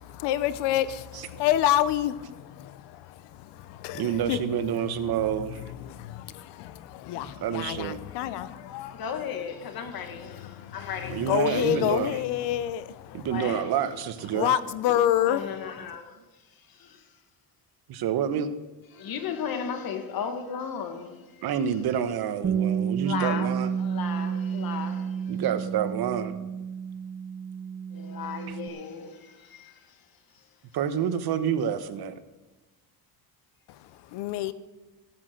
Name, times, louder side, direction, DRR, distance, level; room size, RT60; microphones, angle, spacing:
voice 1, 0.0-4.4 5.8-9.0 9.9-13.3 14.3-15.4 34.1-34.5, left 12 dB, 90° left, 0.8 m, -28 dB
voice 2, 4.0-5.6 7.4-8.0 11.1-12.2 13.1-14.5 17.9-18.5 21.4-23.7 25.3-26.3 28.5-28.6 30.7-32.1, right 9 dB, 65° right, 1.2 m, -28 dB
voice 3, 7.0-7.4 8.9-11.9 13.3-13.7 14.3-14.5 15.3-16.0 16.7-17.1 18.9-21.4 23.0-25.4 27.9-30.0 30.4-30.5, left 7 dB, 60° left, 1.9 m, -36 dB
Bass guitar, 22.4-28.7, right 7 dB, 30° right, 1.1 m, -30 dB
16.5 x 8.3 x 6.5 m
cardioid pair, 100°, 40 cm